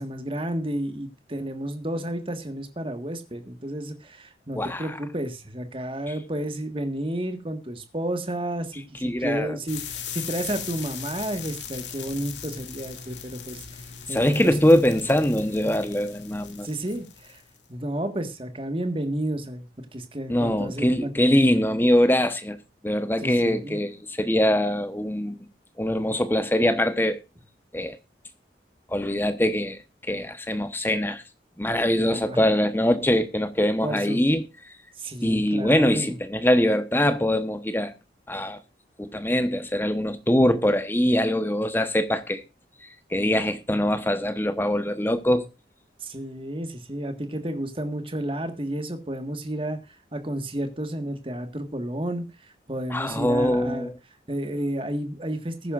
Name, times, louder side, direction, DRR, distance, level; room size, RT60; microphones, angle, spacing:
voice 1, 0.0-14.5 15.6-15.8 16.6-17.4 17.7-21.1 23.2-23.8 32.0-32.4 33.8-34.2 35.0-36.2 46.0-53.9 54.3-55.7, right 1 dB, 30° right, 1.6 m, -31 dB
voice 2, 9.0-9.6 14.1-16.7 20.3-22.6 22.8-25.5 25.8-27.2 27.7-28.0 28.9-29.8 30.1-31.2 31.6-34.4 35.2-37.9 38.3-38.6 39.0-42.4 43.1-45.5 52.9-53.9, left 1 dB, 10° left, 1.0 m, -23 dB
sound 1, 9.7-17.6, left 8 dB, 85° left, 2.4 m, -39 dB
20.5 x 10.0 x 2.5 m
head